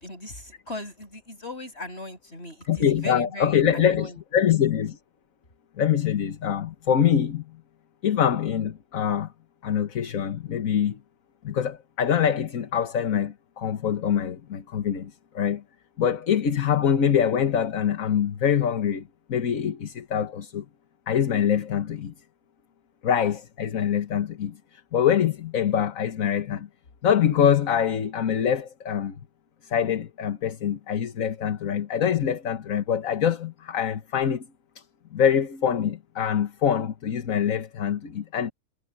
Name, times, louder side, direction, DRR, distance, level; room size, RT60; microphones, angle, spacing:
voice 1, 0.0-4.2, left 1 dB, 40° left, 6.5 m, -38 dB
voice 2, 2.7-5.0 5.8-7.5 8.0-9.3 9.6-11.0 11.4-15.6 16.0-20.6 21.1-22.1 23.0-26.7 27.0-29.2 29.6-34.5 34.7-34.8 35.1-38.5, left 8 dB, 60° left, 1.6 m, -24 dB
omnidirectional pair, 1.7 m